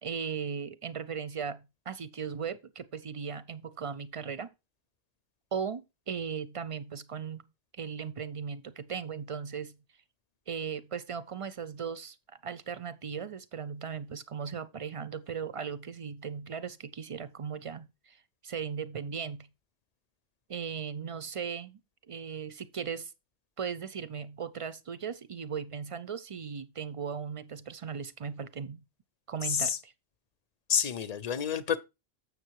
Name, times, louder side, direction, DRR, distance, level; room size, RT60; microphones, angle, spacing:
voice 1, 0.0-4.5 5.5-7.5 7.8-9.8 10.5-12.2 12.4-19.5 20.5-21.8 22.1-23.1 23.6-28.8 29.3-29.9, right 6 dB, 40° right, 0.5 m, -37 dB
voice 2, 30.7-31.8, left 7 dB, 45° left, 0.6 m, -29 dB
7.2 x 6.7 x 4.6 m
omnidirectional pair, 1.1 m